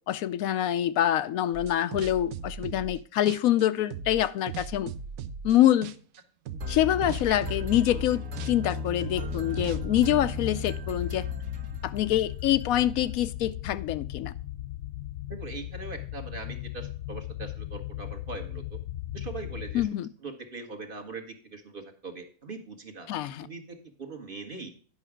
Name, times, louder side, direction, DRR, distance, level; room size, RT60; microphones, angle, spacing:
voice 1, 0.1-4.9 5.4-5.9 6.7-11.3 11.8-14.3 19.7-20.1 23.1-23.5, left 12 dB, 85° left, 1.0 m, -25 dB
sound 1, 1.5-3.0 3.3-5.6 5.8-6.2 6.5-10.3, right 6 dB, 85° right, 1.1 m, -38 dB
sound 2, 6.6-12.3, left 4 dB, 70° right, 1.5 m, -35 dB
sound 3, 9.5-19.9, left 13 dB, 65° left, 0.7 m, -38 dB
voice 2, 15.3-18.8 19.1-19.9 20.2-23.1 23.4-24.7, right 3 dB, 40° right, 1.5 m, -41 dB
10.0 x 5.7 x 4.8 m
omnidirectional pair, 1.5 m